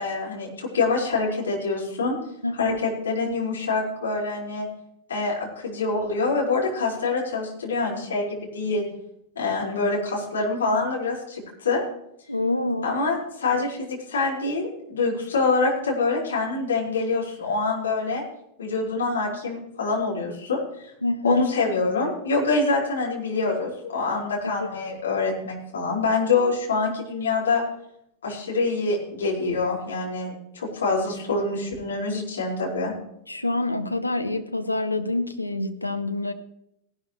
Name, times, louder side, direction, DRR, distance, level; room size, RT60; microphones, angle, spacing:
voice 1, 0.0-2.2 2.6-4.7 5.1-8.8 9.3-11.8 12.8-18.2 18.6-20.9 21.2-27.6 28.2-32.9, left 3 dB, 70° left, -3 dB, 5.0 m, -25 dB
voice 2, 2.4-2.8 12.3-12.9 13.5-13.6 21.0-21.5 24.6-24.7 33.3-36.3, left 2 dB, 85° left, 7 dB, 1.0 m, -26 dB
18.0 x 12.0 x 3.2 m, 0.79 s
figure-of-eight pair, 90°, 0 cm